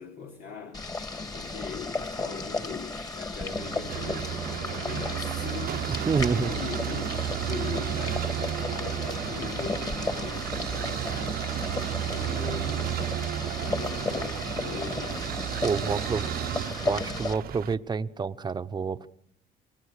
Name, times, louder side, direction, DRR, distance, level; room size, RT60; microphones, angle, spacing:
voice 1, 0.0-11.4 12.0-13.1 13.5-15.5 15.8-16.3, left 6 dB, 75° left, 3.3 m, -41 dB
Boiling, 0.7-17.3, left 3 dB, 20° left, 2.4 m, -34 dB
sound 1, 3.4-17.7, right 12 dB, 65° right, 0.9 m, -33 dB
voice 2, 6.1-6.5 15.6-16.2 16.8-19.1, right 5 dB, 25° right, 1.0 m, -28 dB
27.5 x 20.5 x 6.7 m
cardioid pair, 110°, 17 cm